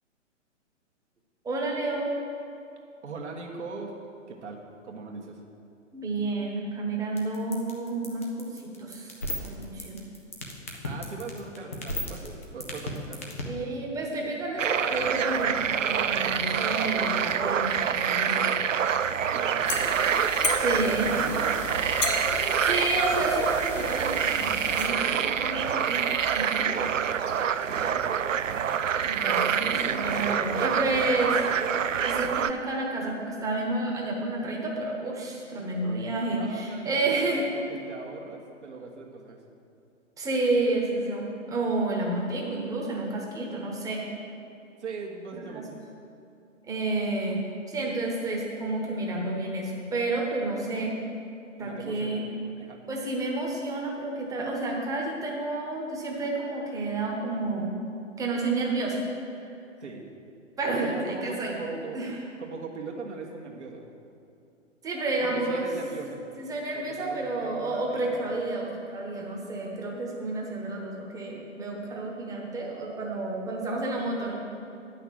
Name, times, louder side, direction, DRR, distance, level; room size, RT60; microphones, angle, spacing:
voice 1, 1.4-2.1 5.9-9.1 9.4-10.0 13.4-18.6 20.6-21.1 22.6-26.9 29.0-31.3 32.0-37.5 40.2-44.1 45.6-45.7 46.7-51.0 51.6-52.2 52.9-57.7 58.2-59.0 59.5-59.6 60.6-61.5 61.9-62.1 64.8-65.7 66.4-74.3, right 2 dB, 10° right, -1 dB, 1.1 m, -30 dB
voice 2, 3.0-3.9 4.3-5.4 10.8-13.2 19.3-20.3 20.7-21.6 27.6-28.1 29.5-31.4 36.3-39.4 44.8-45.8 51.6-52.2 52.6-52.8 59.8-60.1 60.8-62.0 62.4-63.9 65.2-66.2 66.7-68.3, right 4 dB, 65° right, -1 dB, 1.5 m, -40 dB
sound 1, 7.2-13.4, left 2 dB, 15° left, 0.3 m, -32 dB
sound 2, 14.6-32.5, right 8 dB, 80° right, 0.5 m, -26 dB
sound 3, 19.6-24.9, left 3 dB, 75° left, 1.7 m, -34 dB
9.1 x 5.8 x 7.6 m, 2.7 s
figure-of-eight pair, 120°, 38 cm